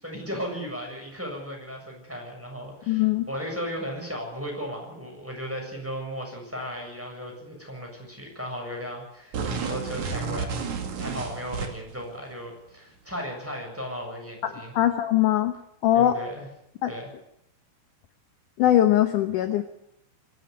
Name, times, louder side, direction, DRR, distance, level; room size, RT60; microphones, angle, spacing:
voice 1, 0.0-10.6 11.0-14.7 15.9-16.5 16.9-17.1, equal, 5° right, 0 dB, 7.1 m, -36 dB
voice 2, 2.9-3.3 14.4-15.5 15.8-16.1 16.8-16.9 18.6-19.6, left 12 dB, 70° left, 8 dB, 2.0 m, -21 dB
sound 1, 9.3-12.0, right 5 dB, 50° right, 3.4 m, -31 dB
25.0 x 12.0 x 9.7 m, 0.79 s
omnidirectional pair, 4.9 m